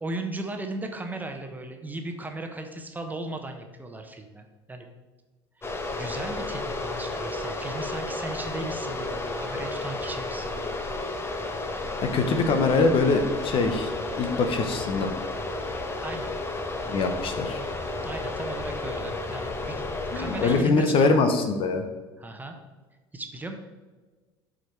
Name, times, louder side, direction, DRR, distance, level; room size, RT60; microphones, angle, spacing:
voice 1, 0.0-4.9 5.6-5.7 5.9-10.7 16.0-16.3 18.0-19.8 20.1-21.3 22.2-22.5 23.1-23.5, right 2 dB, 15° right, 4 dB, 1.1 m, -36 dB
sound 1, 5.6-20.6, left 2 dB, 20° left, 1.1 m, -32 dB
voice 2, 12.1-13.9 14.1-15.1 16.9-17.6 20.1-21.8, left 3 dB, 40° left, 7 dB, 1.0 m, -23 dB
12.5 x 5.0 x 3.3 m, 1.3 s
figure-of-eight pair, 65°, 13 cm